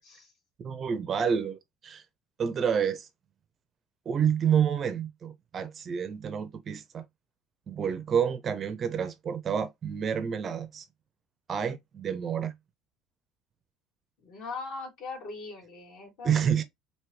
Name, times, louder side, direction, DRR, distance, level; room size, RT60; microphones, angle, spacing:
voice 1, 0.6-2.0 2.4-3.1 4.1-7.0 7.7-10.8 11.5-12.5 16.2-16.6, right 7 dB, 30° right, 0.5 m, -29 dB
voice 2, 14.2-16.5, left 3 dB, 60° left, 3.2 m, -40 dB
4.5 x 2.7 x 3.2 m
cardioid pair, 150°, 0 cm